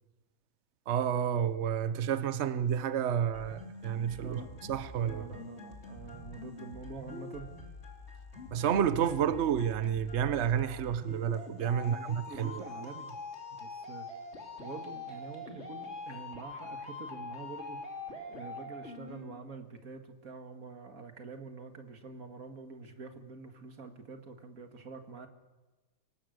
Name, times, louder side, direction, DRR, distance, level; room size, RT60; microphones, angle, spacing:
voice 1, 0.9-5.2 8.5-12.6, right 8 dB, 85° right, 0.6 m, -30 dB
sound 1, 3.3-19.3, left 3 dB, 30° left, 3.1 m, -44 dB
voice 2, 5.0-7.5 11.8-13.1 13.6-14.1 14.6-17.8 18.3-25.3, right 4 dB, 40° right, 2.1 m, -46 dB
24.0 x 18.5 x 6.5 m
omnidirectional pair, 2.4 m